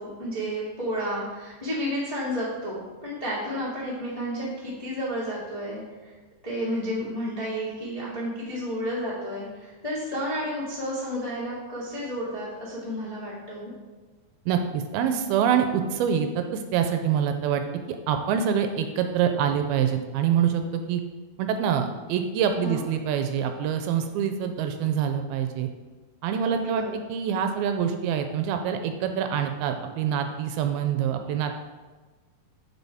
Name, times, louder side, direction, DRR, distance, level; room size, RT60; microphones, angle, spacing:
voice 1, 0.0-6.1 6.4-13.7 22.6-22.8 26.4-26.9, equal, 25° left, -8 dB, 0.7 m, -31 dB
voice 2, 14.5-21.0 21.4-25.7 26.2-31.5, right 8 dB, 85° right, 6 dB, 2.4 m, -25 dB
8.2 x 6.8 x 3.5 m, 1.3 s
omnidirectional pair, 4.5 m